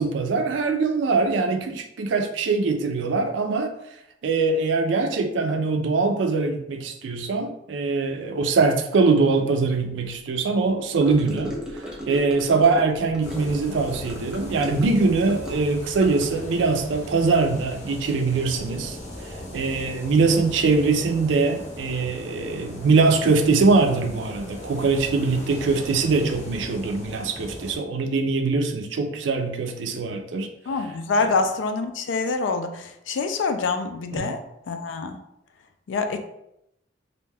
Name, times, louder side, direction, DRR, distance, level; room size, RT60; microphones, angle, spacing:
voice 1, 0.0-3.7 4.2-19.0 19.2-30.5 31.2-31.3 34.1-34.3, right 4 dB, 80° right, 6 dB, 0.4 m, -22 dB
Gurgling / Car passing by / Sink (filling or washing), 11.0-16.7, equal, 5° right, 0.5 m, -36 dB
Playa Zipolite, 13.2-27.8, left 1 dB, 40° left, 0.6 m, -38 dB
voice 2, 30.7-34.4 34.7-35.2 35.9-36.2, left 4 dB, 85° left, 8 dB, 0.3 m, -26 dB
2.5 x 2.2 x 3.3 m, 0.81 s
head